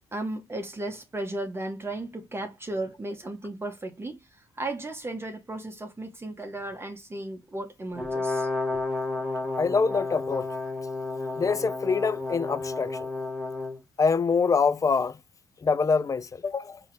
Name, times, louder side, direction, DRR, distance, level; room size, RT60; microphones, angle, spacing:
voice 1, 0.1-4.2 4.6-8.5, right 2 dB, 25° right, 1.4 m, -35 dB
Brass instrument, 8.0-13.8, left 3 dB, 5° right, 1.9 m, -31 dB
voice 2, 9.6-10.5 11.4-13.1 14.0-15.2 15.6-16.8, left 5 dB, 35° left, 0.5 m, -25 dB
4.4 x 3.0 x 3.5 m
supercardioid pair, 55°, 10 cm